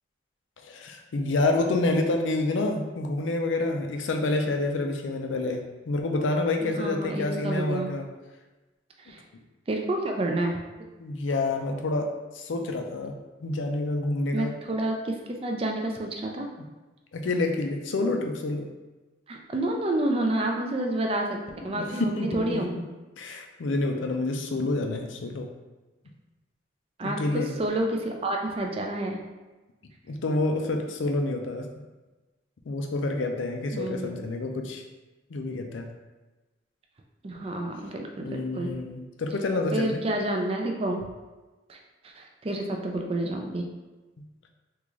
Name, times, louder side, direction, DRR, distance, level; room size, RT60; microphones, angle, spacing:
voice 1, 0.6-8.1 11.0-13.1 13.4-14.5 17.1-18.7 21.6-22.8 23.2-25.5 27.0-27.5 30.1-31.7 32.7-34.8 35.3-35.9 38.2-40.0 44.2-44.3, left 2 dB, 85° left, 4 dB, 0.4 m, -28 dB
voice 2, 6.7-7.9 9.0-9.2 9.7-10.6 14.3-16.5 19.3-21.4 21.6-22.7 27.0-29.2 33.7-34.3 37.2-38.7 39.7-41.1 41.7-41.8 42.0-43.7, right 1 dB, 30° right, 2 dB, 0.3 m, -29 dB
3.6 x 2.4 x 3.0 m, 1.2 s
head